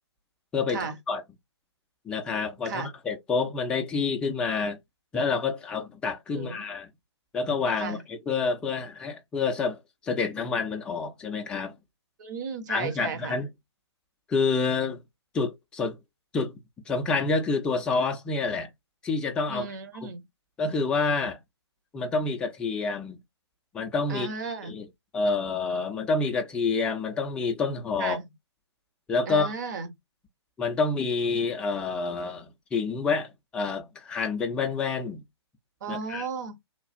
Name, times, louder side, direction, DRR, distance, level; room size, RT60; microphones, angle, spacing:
voice 1, 0.5-1.2 2.1-4.8 5.1-6.9 7.3-11.7 12.7-13.5 14.3-15.0 15.3-16.0 16.3-16.6 16.9-18.7 19.0-19.7 20.6-21.4 21.9-23.2 23.7-24.9 25.1-28.2 29.1-29.5 30.6-32.5 32.7-35.2 35.9-36.3, left 4 dB, 5° left, 0.4 m, -28 dB
voice 2, 6.3-6.7 7.8-8.0 12.2-13.4 19.5-20.2 24.1-24.7 28.0-28.2 29.3-29.9 35.8-36.6, right 5 dB, 40° right, 0.8 m, -34 dB
3.2 x 2.3 x 2.5 m
figure-of-eight pair, 125°, 15 cm